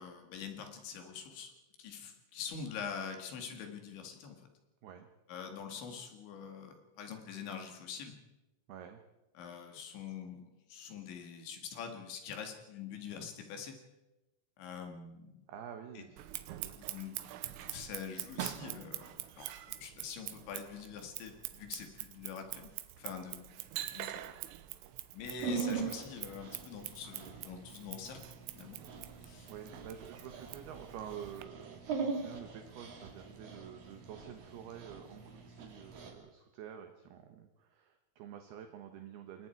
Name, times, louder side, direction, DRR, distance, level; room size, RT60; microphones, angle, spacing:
voice 1, 0.0-1.5 1.8-4.5 5.3-8.2 9.4-13.8 14.6-15.5 16.0-16.1 16.8-22.7 23.0-24.2 25.1-28.2 28.5-28.8 29.2-29.5, left 6 dB, 65° left, 4 dB, 4.3 m, -45 dB
voice 2, 8.7-9.0 15.5-16.7 19.6-19.7 29.5-39.5, right 9 dB, 70° right, 6 dB, 2.6 m, -49 dB
Scissors, 16.2-31.4, right 14 dB, 85° right, 3.6 m, -45 dB
Dog, 25.3-36.1, right 5 dB, 50° right, 4.1 m, -42 dB
28.5 x 21.5 x 4.6 m, 1.0 s
omnidirectional pair, 5.8 m